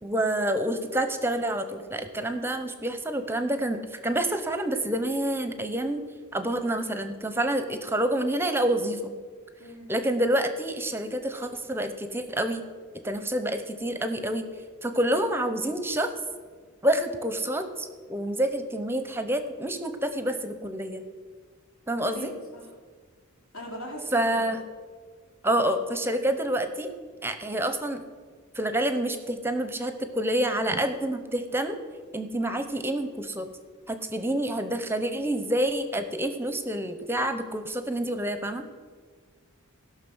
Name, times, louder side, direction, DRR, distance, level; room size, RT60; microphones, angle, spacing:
voice 1, 0.0-6.0 6.3-9.1 9.9-12.6 13.0-14.4 14.8-16.1 16.8-21.0 21.9-22.3 24.1-24.6 25.4-26.9 27.2-28.0 28.5-31.8 32.1-33.5 33.9-38.6, right 1 dB, 10° right, 8 dB, 0.6 m, -28 dB
voice 2, 9.6-9.9 22.0-22.7 23.5-24.5, equal, 85° left, -2 dB, 3.3 m, -40 dB
16.0 x 6.0 x 6.2 m, 1.6 s
head